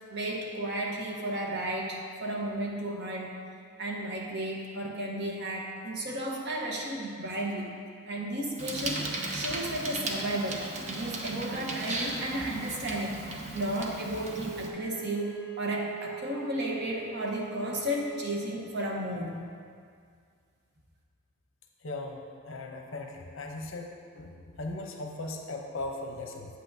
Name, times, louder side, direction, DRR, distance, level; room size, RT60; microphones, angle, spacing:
voice 1, 0.1-3.5 3.8-7.7 8.0-9.0 9.3-19.4, right 1 dB, 50° right, -1 dB, 1.0 m, -33 dB
Bicycle, 8.6-14.7, right 2 dB, 35° right, 0.6 m, -36 dB
Wind instrument woodwind instrument, 14.0-18.5, right 6 dB, 25° left, 1.5 m, -42 dB
voice 2, 21.8-22.2 22.5-23.9 24.1-26.5, left 2 dB, 65° left, 2 dB, 0.7 m, -38 dB
8.2 x 8.1 x 2.7 m, 2.1 s
head